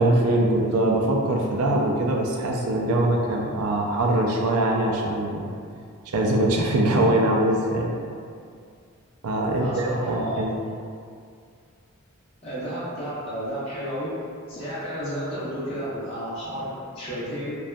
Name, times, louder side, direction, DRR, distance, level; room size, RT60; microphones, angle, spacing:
voice 1, 0.0-5.4 6.1-7.9 9.2-10.6, right 1 dB, 80° right, -1 dB, 0.4 m, -22 dB
voice 2, 9.6-10.4 12.4-14.1 14.5-17.5, equal, 25° left, -12 dB, 0.9 m, -32 dB
2.6 x 2.3 x 2.2 m, 2.2 s
head